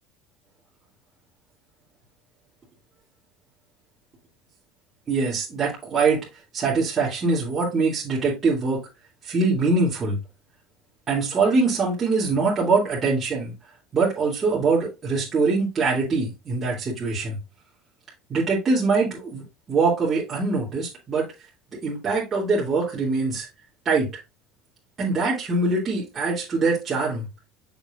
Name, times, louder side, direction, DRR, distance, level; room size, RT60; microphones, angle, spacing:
voice 1, 5.1-6.2 6.5-8.8 9.2-10.2 11.1-13.5 13.9-17.4 18.3-21.3 21.8-23.5 23.8-24.1 25.0-27.3, right 4 dB, 30° right, 3.0 m, -23 dB
6.9 x 6.1 x 2.6 m
supercardioid pair, 95°, 0 cm